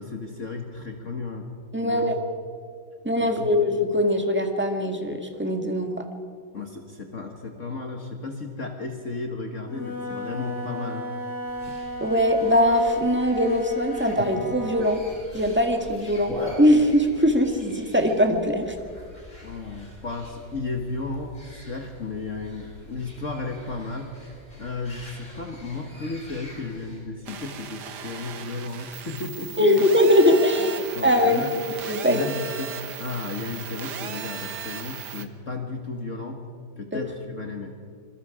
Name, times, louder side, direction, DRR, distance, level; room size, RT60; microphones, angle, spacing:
voice 1, 0.0-1.5 1.8-2.2 3.2-3.5 6.5-11.0 19.4-24.3 24.6-30.0 30.6-30.7 30.9-31.6 32.0-36.4 36.8-37.8, left 3 dB, 40° left, 3 dB, 1.7 m, -34 dB
voice 2, 1.7-2.1 3.0-5.9 12.0-15.0 15.3-18.7 29.6-31.5 31.9-32.2, left 1 dB, 5° right, 4 dB, 1.5 m, -21 dB
Wind instrument woodwind instrument, 9.6-15.0, left 1 dB, 75° left, 7.6 m, -34 dB
sound 1, 11.4-27.0, left 1 dB, 20° left, 5.6 m, -42 dB
sound 2, 27.3-35.3, right 7 dB, 60° right, 1.6 m, -37 dB
26.5 x 22.0 x 5.0 m, 2.1 s
omnidirectional pair, 2.2 m